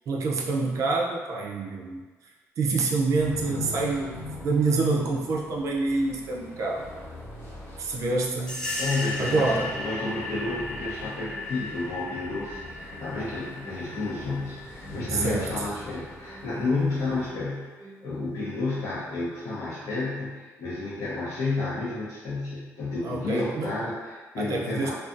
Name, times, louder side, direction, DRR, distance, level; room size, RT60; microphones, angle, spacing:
voice 1, 0.1-2.0 2.6-6.9 7.8-8.6 9.2-9.7 15.1-15.6 23.0-23.8 24.4-24.9, right 3 dB, 65° right, -1 dB, 0.4 m, -27 dB
sound 1, 3.1-17.3, left 1 dB, 45° left, 1.0 m, -42 dB
sound 2, 8.5-16.8, left 2 dB, 10° left, 0.4 m, -36 dB
voice 2, 8.8-24.9, left 3 dB, 70° left, -9 dB, 0.7 m, -31 dB
sound 3, 9.1-19.1, right 2 dB, 5° right, 0.8 m, -49 dB
2.5 x 2.3 x 2.4 m, 1.4 s
cardioid pair, 120°, 6 cm